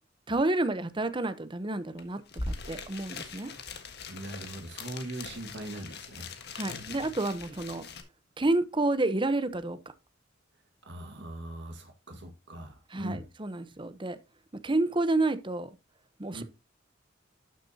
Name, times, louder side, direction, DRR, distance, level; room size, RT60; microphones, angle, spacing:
voice 1, 0.3-2.2 2.5-3.5 6.5-7.8 8.4-9.8 12.9-14.2 14.6-15.7 16.2-16.4, right 2 dB, 25° right, 0.9 m, -29 dB
sound 1, 2.0-2.1 2.3-8.0, left 3 dB, 60° left, 1.5 m, -41 dB
voice 2, 4.1-6.3 10.8-13.3 16.3-16.4, right 1 dB, 65° right, 1.7 m, -40 dB
12.0 x 6.9 x 2.8 m
head